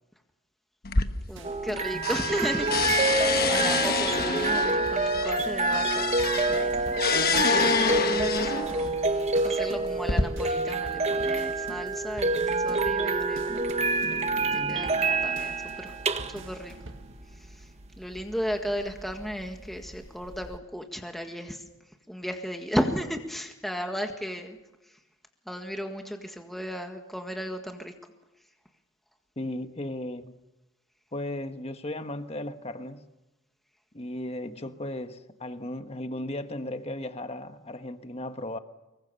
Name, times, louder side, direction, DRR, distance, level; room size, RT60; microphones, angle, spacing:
sound 1, 0.8-1.8 2.0-8.9 9.6-10.2, left 5 dB, 50° left, 1.2 m, -27 dB
voice 1, 1.3-3.1 3.5-6.1 6.5-9.0 9.4-13.6 14.5-15.9 16.3-16.7 17.4-17.7 18.0-21.6 22.1-24.6 25.5-27.9, equal, ahead, 1.7 m, -35 dB
sound 2, 1.3-17.2, right 2 dB, 65° right, 2.0 m, -46 dB
sound 3, 1.4-20.6, right 3 dB, 30° right, 1.2 m, -28 dB
voice 2, 14.5-14.8 29.4-30.4 31.1-33.1 33.9-38.6, left 1 dB, 30° left, 1.3 m, -36 dB
25.0 x 23.0 x 6.9 m
head